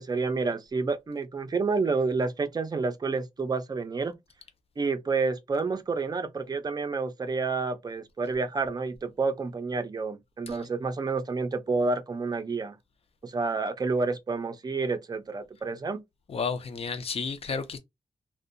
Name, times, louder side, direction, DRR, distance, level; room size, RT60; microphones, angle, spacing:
voice 1, 0.0-4.1 4.8-12.8 13.2-16.0, right 4 dB, 30° right, 0.4 m, -29 dB
voice 2, 16.3-17.8, left 5 dB, 50° left, 0.5 m, -32 dB
2.6 x 2.1 x 2.5 m
wide cardioid pair, 115°, 13 cm